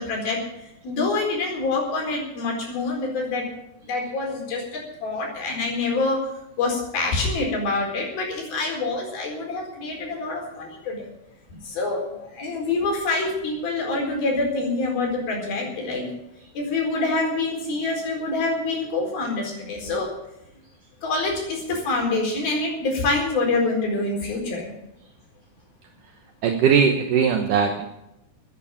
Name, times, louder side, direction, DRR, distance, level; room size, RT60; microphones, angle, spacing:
voice 1, 0.0-3.5 3.8-6.3 6.6-11.1 11.6-16.1 16.5-20.1 21.0-24.7, left 3 dB, 70° left, 0 dB, 6.2 m, -26 dB
voice 2, 26.4-27.9, right 6 dB, 65° right, 4 dB, 2.4 m, -19 dB
14.0 x 9.8 x 8.8 m, 0.87 s
omnidirectional pair, 4.4 m